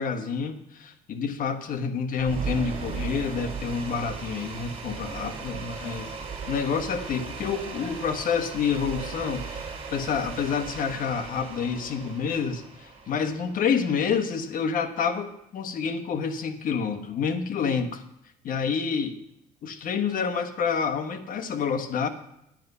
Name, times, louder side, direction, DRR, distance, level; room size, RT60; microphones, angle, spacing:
voice 1, 0.0-6.1 6.5-18.0 18.4-19.2 19.6-22.1, left 6 dB, 55° left, 9 dB, 1.2 m, -28 dB
sound 1, 2.2-14.3, right 5 dB, 35° right, 2.8 m, -37 dB
10.5 x 9.4 x 5.5 m, 0.79 s
cardioid pair, 110°, 17 cm